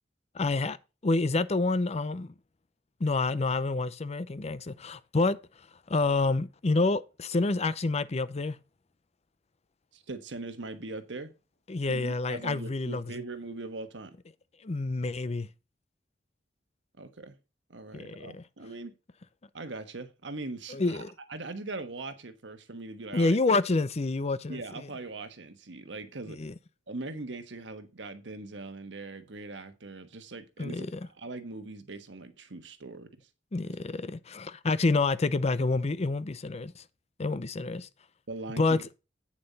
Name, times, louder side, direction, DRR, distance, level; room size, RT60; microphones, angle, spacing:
voice 1, 0.3-0.8 1.0-2.3 3.0-5.4 5.9-8.6 11.7-13.0 14.6-15.5 17.9-18.4 20.7-21.1 23.1-24.9 26.3-26.5 30.6-31.1 33.5-36.8 37.2-37.9 38.6-38.8, left 3 dB, 35° left, 0.6 m, -28 dB
voice 2, 9.9-11.3 11.9-14.1 17.0-17.3 17.7-19.0 19.5-23.4 24.5-26.4 26.9-33.3 38.3-38.8, right 3 dB, 85° right, 1.3 m, -41 dB
8.9 x 7.2 x 4.1 m
head